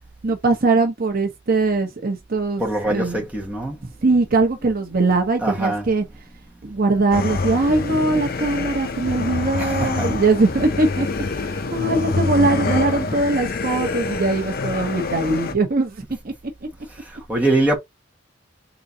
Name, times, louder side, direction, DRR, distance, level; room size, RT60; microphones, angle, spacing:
voice 1, 0.2-3.2 3.8-6.1 6.6-16.3, right 3 dB, 50° right, 0.9 m, -21 dB
voice 2, 2.6-3.8 5.4-5.8 9.6-10.1 17.3-17.8, right 2 dB, 10° right, 1.5 m, -22 dB
sound 1, 7.1-15.5, left 3 dB, 55° left, 0.7 m, -26 dB
4.0 x 3.8 x 2.7 m
head